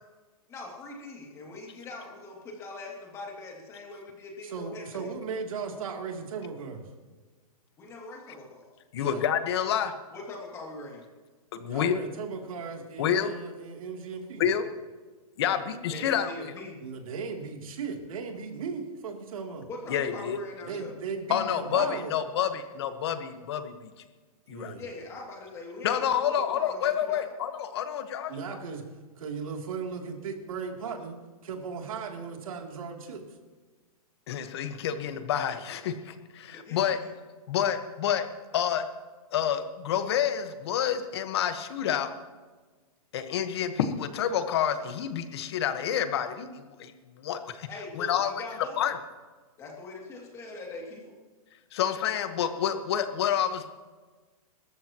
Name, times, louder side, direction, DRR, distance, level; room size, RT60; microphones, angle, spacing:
voice 1, 0.5-5.1 7.8-8.7 10.1-11.0 15.9-16.8 19.7-20.9 24.8-27.3 36.5-37.1 47.7-48.9 49.6-51.1, left 2 dB, 15° left, 0 dB, 2.6 m, -42 dB
voice 2, 4.4-6.8 9.0-9.2 11.7-14.4 16.8-19.7 20.6-22.1 24.5-24.8 28.3-28.8 29.2-33.4, right 5 dB, 65° right, 2 dB, 3.1 m, -37 dB
voice 3, 8.9-9.9 11.5-12.0 13.0-13.3 14.4-14.6 15.4-16.5 19.9-20.4 21.3-23.9 24.5-24.7 25.8-28.3 34.3-37.0 37.5-38.3 38.5-38.8 39.3-42.1 43.1-46.9 47.2-47.7 47.9-48.4 48.8-49.0 51.7-53.7, left 9 dB, 45° left, 9 dB, 1.4 m, -28 dB
25.5 x 14.0 x 3.0 m, 1.4 s
hypercardioid pair, 170°, 19 cm